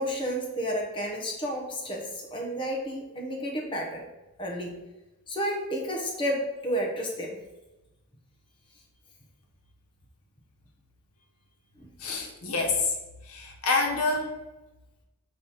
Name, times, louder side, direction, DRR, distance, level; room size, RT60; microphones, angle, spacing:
voice 1, 0.0-4.0 4.4-4.7 5.3-7.4 11.8-11.9, equal, 25° left, -1 dB, 0.9 m, -31 dB
voice 2, 12.0-12.9 13.2-14.3, left 3 dB, 85° left, 1 dB, 1.1 m, -27 dB
6.2 x 3.0 x 5.3 m, 1.0 s
head